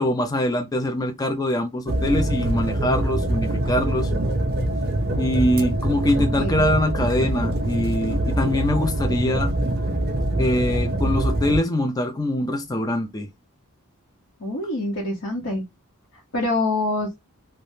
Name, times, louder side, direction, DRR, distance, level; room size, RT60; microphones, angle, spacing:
voice 1, 0.0-4.1 5.2-9.5 10.4-13.3, left 1 dB, 15° left, 0.4 m, -23 dB
sound 1, 1.9-11.6, right 1 dB, 45° right, 0.5 m, -24 dB
voice 2, 6.2-6.6 14.4-15.6 16.3-17.1, left 2 dB, 65° left, 0.9 m, -25 dB
3.3 x 2.1 x 2.7 m
head